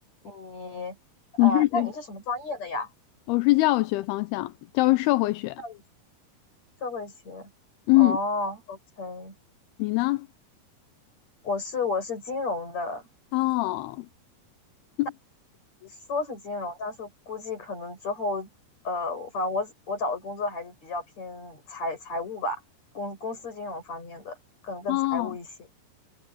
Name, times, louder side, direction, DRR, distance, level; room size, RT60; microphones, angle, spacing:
voice 1, 0.2-1.0 1.4-2.9 5.6-5.8 6.8-7.5 8.0-9.3 11.4-13.0 15.8-18.5 18.8-22.6 23.0-24.4 24.6-25.5, left 2 dB, 40° left, 8.8 m, -32 dB
voice 2, 1.4-1.9 3.3-5.6 7.9-8.2 9.8-10.3 13.3-14.1 15.0-15.1 24.9-25.4, left 20 dB, 80° left, 2.6 m, -23 dB
omnidirectional pair, 4.6 m